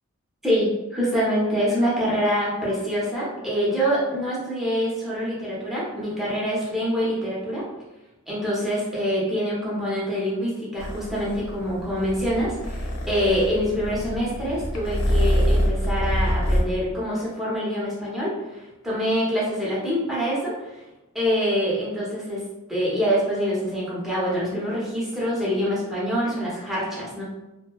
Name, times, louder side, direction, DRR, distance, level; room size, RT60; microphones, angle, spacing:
voice 1, 0.4-7.7 8.3-20.8 21.1-27.2, equal, ahead, -8 dB, 0.6 m, -25 dB
Purr, 10.8-16.6, equal, 80° left, 1.0 m, -25 dB
2.6 x 2.1 x 2.3 m, 1.0 s
head